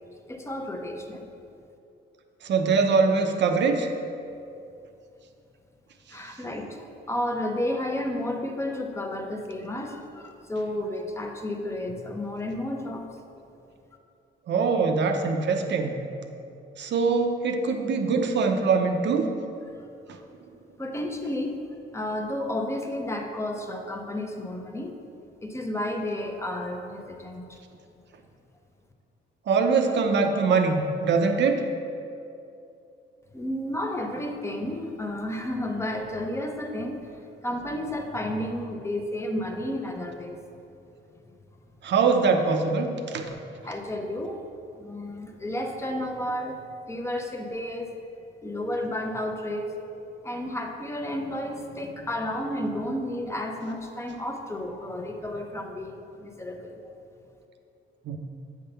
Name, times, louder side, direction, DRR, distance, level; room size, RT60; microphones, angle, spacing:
voice 1, 0.3-1.3 6.1-13.1 19.7-19.8 20.8-21.6 21.9-25.0 25.4-27.6 33.3-40.4 43.6-44.4 44.8-46.6 46.9-48.0 48.4-49.8 50.2-56.8, left 1 dB, 15° left, 3 dB, 0.8 m, -32 dB
voice 2, 2.4-3.9 14.5-16.0 16.8-19.3 29.5-31.6 41.8-42.9 43.1-43.2 58.0-58.2, right 4 dB, 65° right, 5 dB, 0.8 m, -23 dB
7.9 x 3.7 x 6.7 m, 2.6 s
cardioid pair, 90°, 20 cm